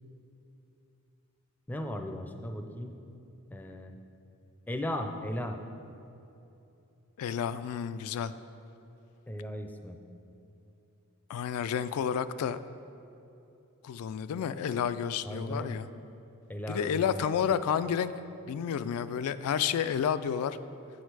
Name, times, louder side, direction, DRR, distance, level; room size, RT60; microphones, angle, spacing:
voice 1, 1.7-2.9 3.5-4.0 4.7-5.6 9.3-10.0 15.2-15.8 16.5-17.3, left 1 dB, 10° left, 5 dB, 0.4 m, -36 dB
voice 2, 7.2-8.3 11.3-12.6 13.8-15.9 16.7-18.1 18.5-20.6, left 8 dB, 85° left, 16 dB, 0.3 m, -30 dB
8.1 x 6.4 x 4.7 m, 2.8 s
head